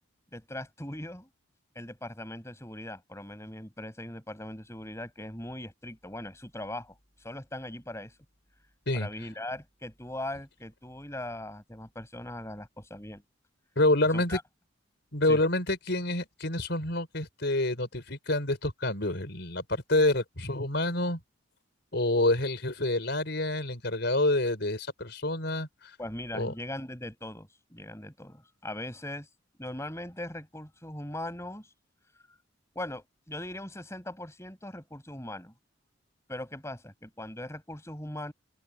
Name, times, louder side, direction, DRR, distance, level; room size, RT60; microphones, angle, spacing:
voice 1, 0.3-1.3 1.8-6.9 7.2-8.1 8.9-13.2 14.1-14.4 15.3-15.4 26.0-29.3 29.6-31.7 32.7-35.5 36.3-38.3, left 1 dB, 15° left, 7.3 m, -40 dB
voice 2, 13.8-14.4 15.1-21.2 21.9-26.0 26.3-26.5, left 2 dB, 60° left, 5.3 m, -27 dB
open air
head